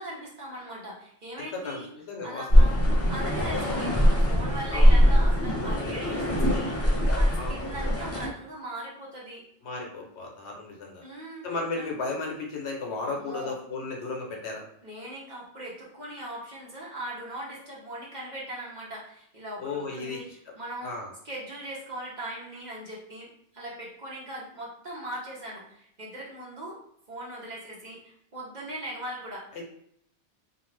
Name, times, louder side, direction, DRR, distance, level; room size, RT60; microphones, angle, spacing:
voice 1, 0.0-1.9 2.2-2.8 3.1-9.4 11.0-11.4 11.7-11.9 13.0-13.5 14.8-20.9 21.2-23.3 23.5-26.8 27.1-29.6, right 1 dB, 45° right, -6 dB, 0.9 m, -39 dB
voice 2, 1.4-2.6 4.7-4.9 7.3-7.5 9.6-11.0 11.4-14.6 19.6-20.3 20.8-21.1 29.5-29.6, left 3 dB, 70° left, 0 dB, 1.0 m, -34 dB
sound 1, 2.5-8.3, equal, 20° left, 0.4 m, -21 dB
2.6 x 2.4 x 3.2 m, 0.70 s
omnidirectional pair, 1.2 m